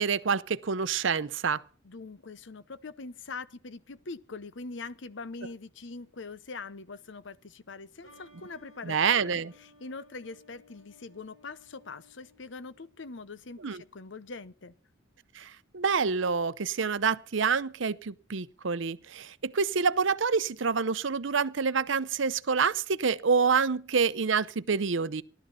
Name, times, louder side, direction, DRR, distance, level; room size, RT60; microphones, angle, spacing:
voice 1, 0.0-1.6 8.8-9.5 13.6-13.8 15.3-25.2, right 5 dB, 70° right, 0.7 m, -27 dB
voice 2, 1.8-14.7, left 3 dB, 65° left, 0.8 m, -43 dB
sound 1, 8.0-13.5, left 2 dB, 85° left, 8.0 m, -59 dB
16.5 x 12.5 x 5.7 m
head